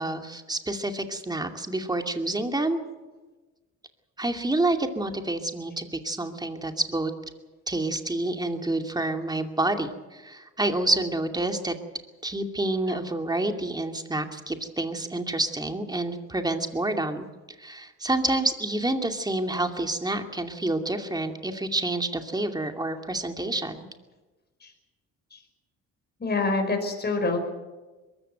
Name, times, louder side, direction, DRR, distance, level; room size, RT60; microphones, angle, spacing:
voice 1, 0.0-2.8 4.2-7.1 7.7-11.7 12.2-17.2 17.6-23.7, right 2 dB, 15° right, 5 dB, 2.5 m, -28 dB
voice 2, 26.2-27.4, left 3 dB, 35° left, 4 dB, 5.3 m, -26 dB
22.0 x 15.0 x 9.2 m, 1.2 s
cardioid pair, 90°, 30 cm